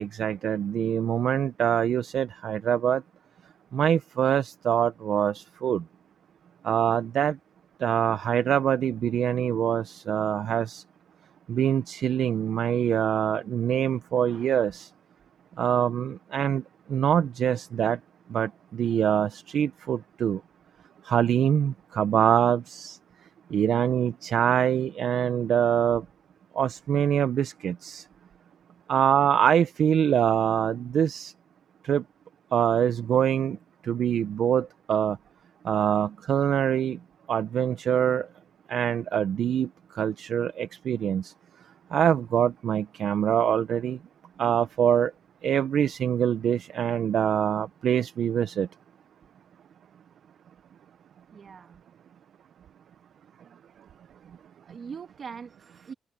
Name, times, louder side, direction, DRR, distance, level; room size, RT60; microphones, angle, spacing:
voice 1, 0.0-3.0 3.7-5.8 6.6-7.4 7.8-10.8 11.5-14.9 15.6-16.6 16.9-18.0 18.3-20.4 21.0-23.0 23.5-26.0 26.6-28.0 28.9-31.3 31.8-32.0 32.5-33.6 33.8-35.2 35.6-37.0 37.3-38.3 38.7-39.7 39.9-41.3 41.9-44.0 44.4-45.1 45.4-48.7, right 9 dB, 65° right, 0.9 m, -24 dB
voice 2, 14.3-14.6 51.3-51.8 53.4-53.6 54.6-55.9, right 6 dB, 50° right, 2.3 m, -42 dB
cardioid pair, 90°, 0 cm